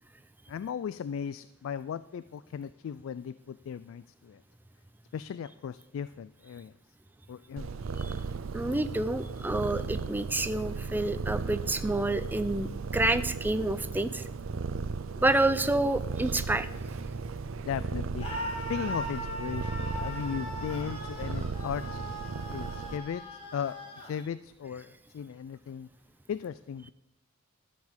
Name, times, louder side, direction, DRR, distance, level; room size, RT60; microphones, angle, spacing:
voice 1, 0.5-4.4 5.1-6.7 7.3-7.7 17.6-18.3 18.7-22.0 22.5-23.2 23.5-23.8 24.0-25.9 26.3-26.9, left 7 dB, 75° left, 15 dB, 0.3 m, -37 dB
Purr, 7.6-23.0, right 4 dB, 75° right, 0.5 m, -36 dB
voice 2, 8.5-14.2 15.2-16.7, right 2 dB, 10° right, 12 dB, 0.4 m, -28 dB
Screaming, 18.2-24.1, equal, 30° left, 2.3 m, -39 dB
13.0 x 5.0 x 7.2 m, 0.91 s
head